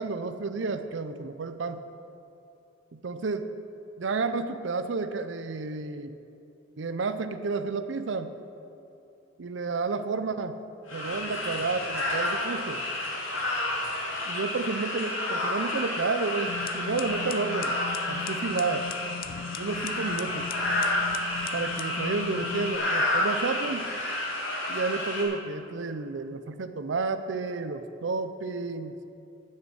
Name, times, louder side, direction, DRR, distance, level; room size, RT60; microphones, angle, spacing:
voice 1, 0.0-1.8 2.9-3.5 4.0-6.1 6.8-8.3 9.4-10.6 10.9-12.8 14.3-17.8 18.1-18.9 19.6-20.5 21.5-23.9 24.7-28.9, right 4 dB, 65° right, 10 dB, 0.5 m, -31 dB
sound 1, 10.9-25.2, left 1 dB, 90° left, 2.8 m, -30 dB
sound 2, 16.5-22.8, left 6 dB, 45° left, 0.4 m, -39 dB
10.5 x 6.6 x 8.5 m, 2.7 s
head